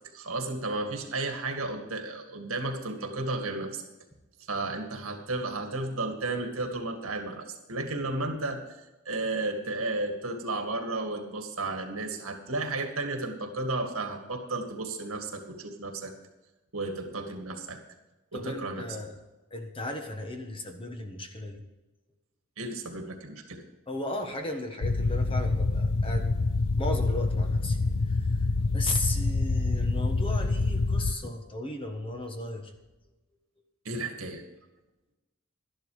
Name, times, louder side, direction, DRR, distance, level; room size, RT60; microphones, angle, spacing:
voice 1, 0.1-3.8 4.5-8.6 9.1-16.1 16.7-17.8 18.3-18.8 22.6-23.6 33.8-34.4, right 2 dB, 70° right, 5 dB, 2.1 m, -33 dB
voice 2, 18.3-19.1 19.5-21.6 23.9-26.3 26.8-27.8 28.7-32.7, left 2 dB, 25° left, 4 dB, 1.4 m, -35 dB
sound 1, 24.8-31.1, left 3 dB, 80° left, 0.7 m, -26 dB
12.5 x 11.0 x 5.0 m, 1.1 s
head